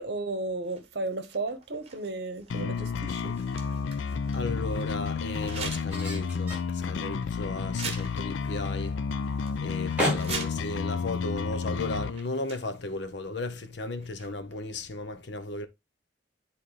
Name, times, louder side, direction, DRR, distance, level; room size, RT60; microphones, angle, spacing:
voice 1, 0.0-3.3, right 2 dB, 60° right, 1.0 m, -34 dB
sound 1, 0.6-4.5 5.4-6.1 6.5-6.6 7.2-7.4 7.7-8.7 9.1-9.5 10.0-10.8 11.7-11.9 12.1-12.9 14.0-14.6, right 5 dB, 35° right, 1.3 m, -42 dB
sound 2, 2.5-12.1, left 5 dB, 85° left, 0.4 m, -31 dB
sound 3, 3.3-13.4, equal, 10° right, 5.1 m, -39 dB
voice 2, 4.1-9.0 9.6-15.7, left 2 dB, 65° left, 0.9 m, -35 dB
9.7 x 4.2 x 3.3 m
head